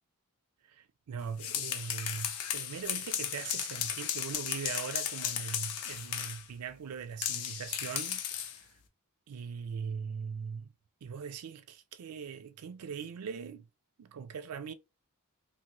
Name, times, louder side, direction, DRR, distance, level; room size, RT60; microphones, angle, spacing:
voice 1, 0.7-8.6 9.3-10.7 11.0-13.6 14.0-14.7, right 6 dB, 85° right, 0.4 m, -41 dB
sound 1, 1.2-6.5 7.2-8.6, left 9 dB, 80° left, 0.5 m, -35 dB
2.7 x 2.6 x 2.9 m
head